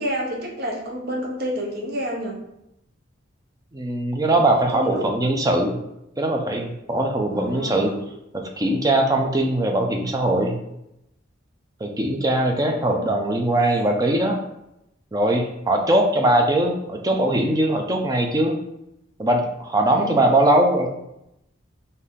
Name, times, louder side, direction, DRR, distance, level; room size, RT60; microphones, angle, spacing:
voice 1, 0.0-2.4 4.5-5.1 7.3-8.1 12.4-13.0 13.5-13.9 19.8-20.4, equal, 55° right, 0 dB, 0.9 m, -30 dB
voice 2, 3.7-5.8 6.2-7.9 8.3-10.6 11.8-14.4 15.1-18.5 19.2-20.9, right 1 dB, 20° right, 2 dB, 0.5 m, -21 dB
4.0 x 2.7 x 3.6 m, 0.84 s
head